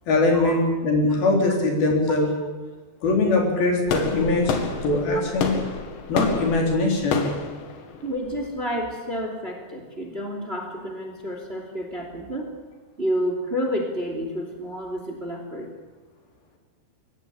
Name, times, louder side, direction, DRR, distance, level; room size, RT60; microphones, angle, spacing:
voice 1, 0.1-2.3 3.0-5.5 6.1-7.3, left 2 dB, 55° left, 1 dB, 5.4 m, -21 dB
sound 1, 3.9-8.8, left 5 dB, 80° left, 4.4 m, -29 dB
voice 2, 8.0-12.5 13.0-15.7, equal, 15° right, 3 dB, 2.3 m, -30 dB
22.0 x 16.5 x 8.7 m, 1.3 s
omnidirectional pair, 5.2 m